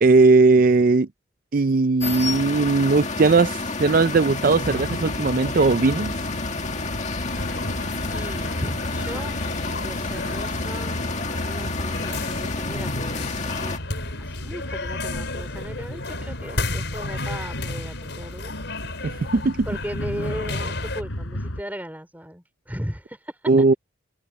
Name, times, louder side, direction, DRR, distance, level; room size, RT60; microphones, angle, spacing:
voice 1, 0.0-1.1 1.5-6.1 19.0-19.7 23.5-23.7, right 3 dB, 45° right, 0.4 m, -18 dB
sound 1, 2.0-13.8, left 3 dB, 35° left, 2.0 m, -30 dB
sound 2, 4.5-21.6, left 1 dB, 90° left, 4.6 m, -33 dB
sound 3, 7.3-21.0, left 3 dB, 60° left, 7.7 m, -34 dB
voice 2, 8.1-9.4 9.7-11.0 11.3-13.8 14.2-18.6 19.0-19.3 19.6-23.8, equal, 10° right, 3.9 m, -37 dB
head